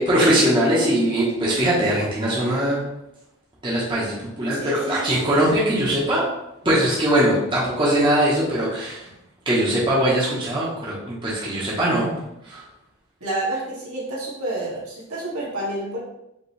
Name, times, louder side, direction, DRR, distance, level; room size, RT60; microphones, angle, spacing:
voice 1, 0.0-2.8 3.6-4.1 4.4-6.2 6.6-9.0 9.5-12.1 12.4-12.6, right 1 dB, 20° right, -7 dB, 1.0 m, -21 dB
voice 2, 4.5-5.1 13.2-16.0, right 1 dB, 75° right, -6 dB, 1.7 m, -29 dB
5.2 x 2.9 x 3.2 m, 0.86 s
head